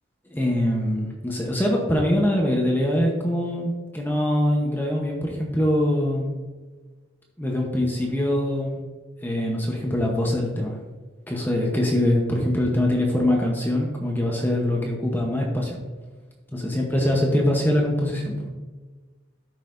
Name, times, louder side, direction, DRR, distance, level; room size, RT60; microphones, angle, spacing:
voice 1, 0.3-6.3 7.4-8.8 9.2-10.8 11.3-15.8 16.6-18.5, left 1 dB, 10° left, -1 dB, 0.9 m, -23 dB
12.0 x 5.6 x 2.6 m, 1.3 s
head